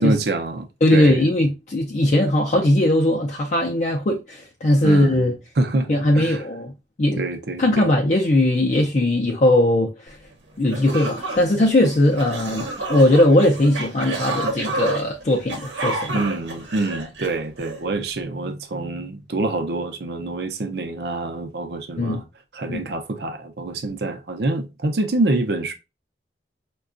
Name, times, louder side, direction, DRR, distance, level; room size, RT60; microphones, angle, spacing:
voice 1, 0.0-0.7 0.9-1.3 4.8-5.2 5.6-5.9 6.1-6.4 7.2-7.9 16.1-22.2 22.5-25.7, right 2 dB, 65° right, 0.6 m, -26 dB
voice 2, 0.8-5.3 5.9-6.7 7.0-7.2 7.6-10.2 10.6-16.1 22.0-22.2 22.7-22.8, left 1 dB, 40° left, 0.5 m, -19 dB
sound 1, 10.3-10.4 10.7-17.8, right 2 dB, 90° right, 0.9 m, -30 dB
4.6 x 2.2 x 2.4 m
head